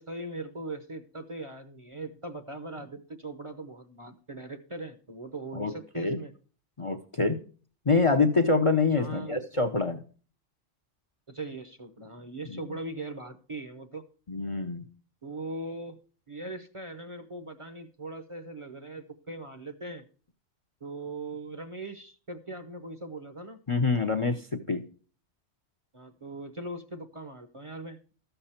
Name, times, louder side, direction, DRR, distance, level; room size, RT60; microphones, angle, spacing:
voice 1, 0.0-6.3 8.9-9.4 11.3-14.0 15.2-16.0 16.3-20.0 20.8-23.6 25.9-28.0, right 2 dB, 30° right, 7 dB, 0.7 m, -40 dB
voice 2, 5.5-6.2 6.8-7.4 7.9-10.0 12.5-12.6 14.3-14.8 23.7-24.8, left 3 dB, 35° left, 8 dB, 0.6 m, -26 dB
13.0 x 6.8 x 4.3 m, 0.39 s
omnidirectional pair, 1.2 m